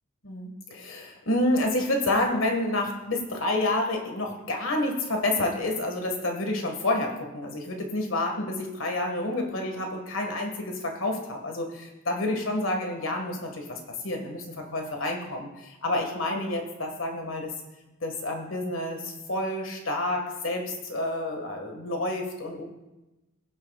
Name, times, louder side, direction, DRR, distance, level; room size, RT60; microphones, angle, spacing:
voice 1, 0.2-13.8 14.0-17.5 18.0-22.6, left 1 dB, 70° left, 2 dB, 1.7 m, -29 dB
20.0 x 7.7 x 2.4 m, 1.0 s
head